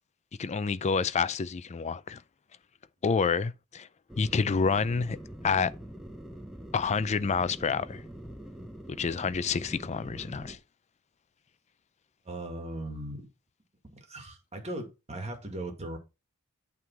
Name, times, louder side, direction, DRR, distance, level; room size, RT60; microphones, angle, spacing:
voice 1, 0.4-2.2 3.0-3.9 4.2-5.2 5.4-5.7 6.7-8.0 8.9-10.6, left 5 dB, 30° left, 0.4 m, -28 dB
sound 1, 4.1-10.6, equal, ahead, 0.9 m, -44 dB
voice 2, 12.2-13.3 13.8-16.0, right 1 dB, 30° right, 2.0 m, -38 dB
8.7 x 3.7 x 6.0 m
head